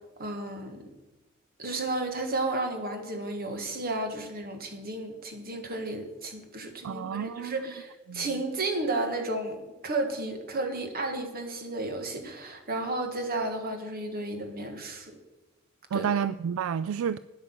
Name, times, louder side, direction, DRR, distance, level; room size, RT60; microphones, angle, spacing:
voice 1, 0.2-0.8 1.6-15.1 15.9-16.1, right 2 dB, 45° right, 1.6 m, -33 dB
voice 2, 6.8-7.6 8.1-8.3 15.9-17.2, right 7 dB, 70° right, 0.3 m, -30 dB
9.8 x 8.2 x 7.3 m
head